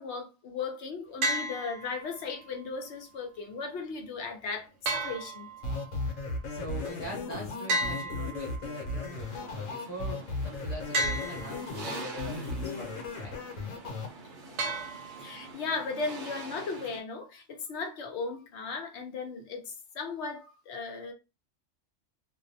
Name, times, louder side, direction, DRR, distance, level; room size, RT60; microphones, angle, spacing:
voice 1, 0.0-5.5 15.2-21.1, left 4 dB, 65° left, 0.9 m, -36 dB
sound 1, 1.2-2.2 4.9-5.9 7.7-8.9 10.9-11.9 14.6-15.5, right 1 dB, 70° right, 0.9 m, -33 dB
sound 2, 5.6-14.1, left 2 dB, 85° left, 1.1 m, -36 dB
voice 2, 6.5-13.4, equal, 20° left, 1.1 m, -42 dB
sound 3, 9.2-17.0, right 3 dB, 50° right, 0.6 m, -46 dB
2.5 x 2.0 x 2.6 m
omnidirectional pair, 1.3 m